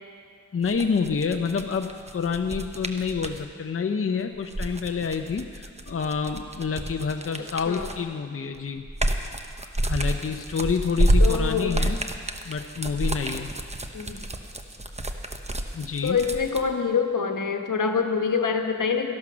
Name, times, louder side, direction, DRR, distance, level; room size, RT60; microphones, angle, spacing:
voice 1, 0.5-8.8 9.8-12.0 12.5-13.5 15.7-16.2, left 5 dB, 45° left, 5 dB, 0.6 m, -28 dB
sound 1, 0.6-3.4 4.3-8.1 8.5-16.6, right 1 dB, 20° right, 0.9 m, -28 dB
voice 2, 11.2-11.8 13.9-14.2 16.0-19.1, left 6 dB, 75° left, 5 dB, 1.2 m, -25 dB
13.0 x 12.0 x 6.2 m, 2.1 s
wide cardioid pair, 75°, 31 cm